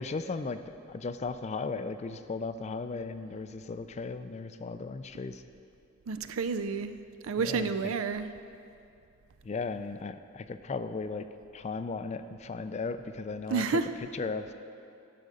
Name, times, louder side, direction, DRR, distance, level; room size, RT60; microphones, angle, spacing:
voice 1, 0.0-5.4 7.4-7.9 9.4-11.3 11.5-14.5, left 4 dB, 35° left, 11 dB, 0.3 m, -36 dB
voice 2, 6.1-6.9 7.2-8.3 13.5-13.9, right 5 dB, 80° right, 11 dB, 0.5 m, -30 dB
12.0 x 6.6 x 5.0 m, 2.6 s
head